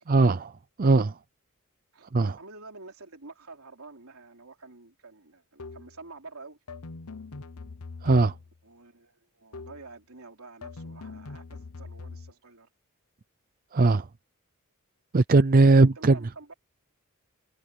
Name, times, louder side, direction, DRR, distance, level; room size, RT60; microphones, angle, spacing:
voice 1, 0.1-0.5 0.8-1.2 2.1-2.4 8.0-8.3 13.7-14.1 15.1-16.2, right 3 dB, 40° right, 0.5 m, -19 dB
voice 2, 1.9-6.6 8.6-12.7 15.7-16.5, right 3 dB, 75° right, 3.5 m, -48 dB
sound 1, 5.6-6.0 6.7-8.6 9.5-9.9 10.6-12.3, left 3 dB, 85° left, 0.9 m, -42 dB
head